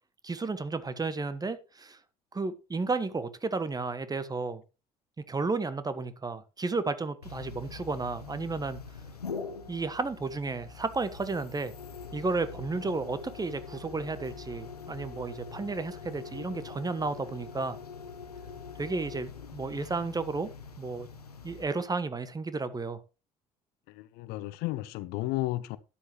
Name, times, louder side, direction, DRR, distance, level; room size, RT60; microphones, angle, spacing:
voice 1, 0.2-2.0 2.3-4.6 5.3-8.8 9.7-11.7 12.1-17.8 18.8-20.5 20.8-21.1 21.4-23.0, right 3 dB, 20° right, 1.3 m, -32 dB
sound 1, 7.2-21.7, left 5 dB, 80° left, 1.1 m, -43 dB
voice 2, 23.9-25.8, left 17 dB, 55° left, 0.7 m, -33 dB
12.5 x 10.0 x 3.1 m
figure-of-eight pair, 55°, 19 cm